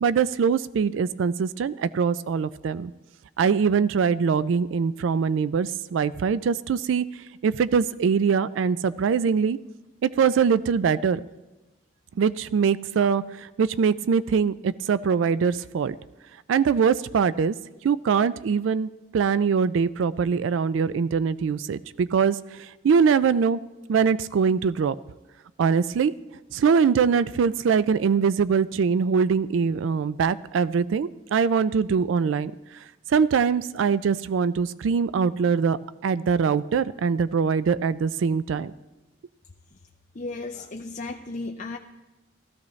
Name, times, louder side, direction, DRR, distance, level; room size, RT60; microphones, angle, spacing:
voice 1, 0.0-2.9 3.4-7.1 7.4-9.6 10.0-11.2 12.2-16.0 16.5-17.5 17.8-23.6 23.9-25.0 25.6-26.1 26.5-32.5 33.1-35.8 36.0-38.7, right 6 dB, 90° right, 17 dB, 0.3 m, -23 dB
voice 2, 40.1-41.8, left 3 dB, 40° left, 1 dB, 0.6 m, -34 dB
16.5 x 14.0 x 3.2 m, 1.1 s
head